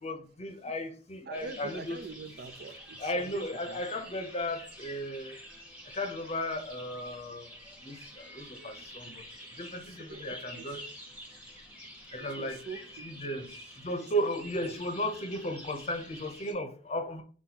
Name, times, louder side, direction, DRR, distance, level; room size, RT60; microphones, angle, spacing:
voice 1, 0.0-2.0 3.0-5.4 5.9-7.5 7.8-9.1 9.6-10.8 12.1-12.6 13.0-13.5 13.8-17.2, equal, 35° left, 0.7 m, -35 dB
sound 1, 1.3-16.5, equal, 10° right, 1.2 m, -48 dB
voice 2, 1.3-3.8 7.8-7.9 8.5-9.3 9.8-10.8 12.2-13.4 14.6-14.7, right 4 dB, 55° right, 0.4 m, -46 dB
4.6 x 4.0 x 2.8 m
head